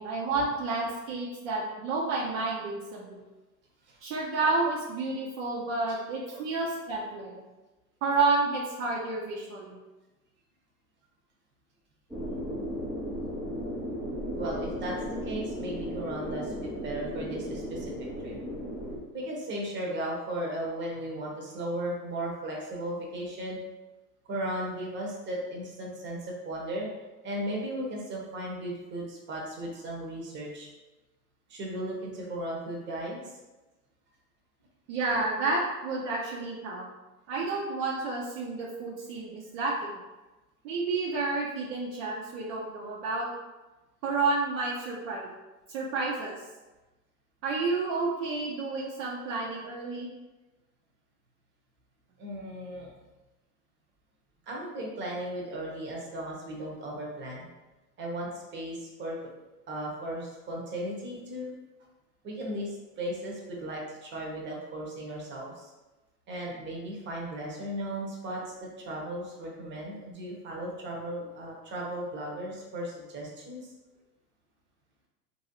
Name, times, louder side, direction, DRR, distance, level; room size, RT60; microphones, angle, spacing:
voice 1, 0.0-3.2 4.0-7.4 8.0-9.8 34.9-36.9 37.3-39.9 40.6-43.3 44.0-45.3 45.7-46.3 47.4-50.1, right 3 dB, 50° right, -2 dB, 0.7 m, -30 dB
sound 1, 12.1-19.0, equal, 5° right, 0.4 m, -35 dB
voice 2, 14.4-17.9 18.2-18.4 19.1-23.6 24.3-26.9 27.2-30.7 31.5-33.2 52.2-52.9 54.5-57.5 58.0-59.2 59.7-61.5 62.2-65.7 66.3-73.6, right 1 dB, 25° right, -2 dB, 0.8 m, -36 dB
3.0 x 2.7 x 2.9 m, 1.1 s
hypercardioid pair, 105°, 48 cm